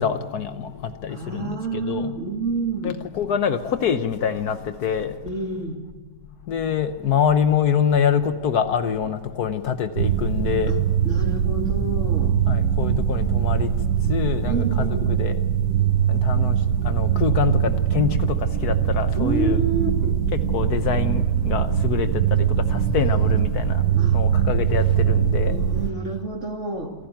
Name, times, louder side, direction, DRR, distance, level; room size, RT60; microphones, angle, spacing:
voice 1, 0.0-2.2 2.8-5.2 6.5-10.9 12.5-13.7 14.1-15.4 16.1-16.6 16.8-19.6 20.3-23.8 24.1-25.6, left 7 dB, 65° left, 1.4 m, -25 dB
voice 2, 1.1-2.9 5.2-5.8 10.7-12.4 14.4-15.1 19.1-20.2 24.0-24.2 25.5-26.9, right 3 dB, 40° right, 2.6 m, -29 dB
sound 1, 10.0-25.9, right 9 dB, 65° right, 1.5 m, -22 dB
28.0 x 12.0 x 9.1 m
omnidirectional pair, 1.9 m